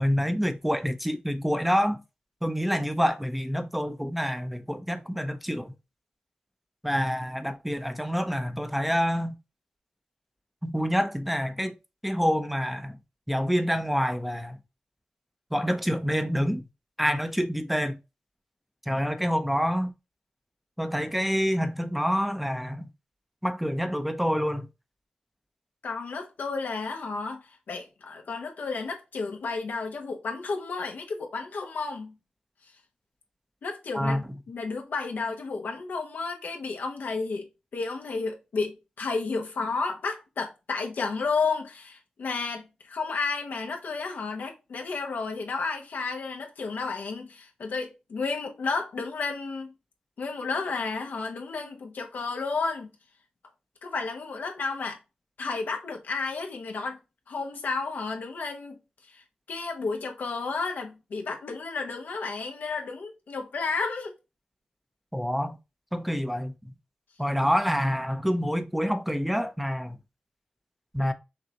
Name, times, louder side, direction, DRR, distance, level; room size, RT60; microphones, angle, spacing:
voice 1, 0.0-2.0 2.4-5.7 6.8-9.4 10.6-11.7 12.0-13.0 13.3-14.6 15.5-16.7 17.0-18.0 18.9-19.9 20.8-22.9 23.4-24.7 33.9-34.2 65.1-65.6 65.9-66.7 67.2-70.0 70.9-71.1, equal, 5° right, 0.7 m, -27 dB
voice 2, 25.8-32.1 33.6-49.7 50.2-52.9 53.8-55.0 55.4-57.0 57.3-58.8 59.1-59.2 59.5-64.1, left 4 dB, 85° left, 1.0 m, -32 dB
6.4 x 2.4 x 2.9 m
cardioid pair, 40°, 3 cm